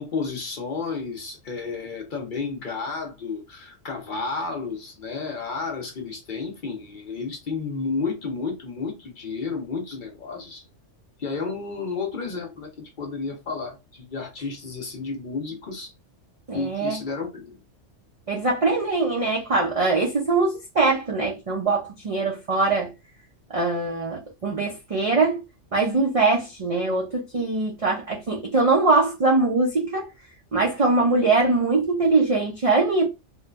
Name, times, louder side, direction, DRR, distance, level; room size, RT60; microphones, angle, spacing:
voice 1, 0.0-10.6 11.2-15.9 16.5-17.6, left 4 dB, 50° left, 0.7 m, -32 dB
voice 2, 16.5-17.0 18.3-22.9 23.5-25.4 25.7-30.1 30.5-33.1, right 3 dB, 55° right, 0.4 m, -22 dB
3.1 x 2.1 x 2.3 m
omnidirectional pair, 1.3 m